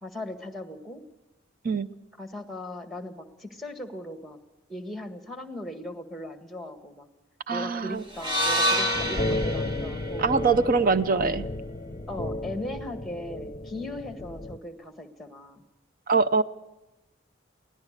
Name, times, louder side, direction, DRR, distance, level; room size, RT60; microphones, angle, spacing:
voice 1, 0.0-1.0 2.2-4.4 4.7-7.1 7.5-10.3 11.1-11.4 12.1-15.6, left 1 dB, ahead, 6 dB, 1.6 m, -38 dB
voice 2, 7.5-8.0 10.2-11.5 16.1-16.4, right 4 dB, 45° right, 12 dB, 0.7 m, -23 dB
sound 1, 8.1-12.3, equal, 25° right, 2.0 m, -29 dB
sound 2, 8.9-14.6, left 1 dB, 30° left, 0.8 m, -33 dB
23.5 x 17.0 x 6.6 m, 1.0 s
head